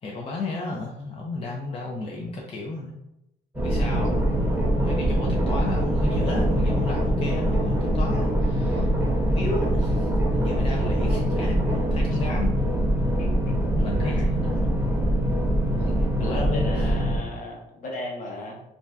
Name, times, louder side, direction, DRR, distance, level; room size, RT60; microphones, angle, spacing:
voice 1, 0.0-2.9 3.5-4.3 4.8-8.9 9.3-12.5 13.8-14.8 16.0-16.7, left 2 dB, 35° left, -2 dB, 0.5 m, -33 dB
sound 1, 3.5-17.2, right 1 dB, 10° right, 0.8 m, -23 dB
voice 2, 12.9-13.5 16.2-18.6, left 1 dB, 50° left, 0 dB, 0.8 m, -36 dB
2.6 x 2.2 x 3.3 m, 0.85 s
cardioid pair, 110°, 17 cm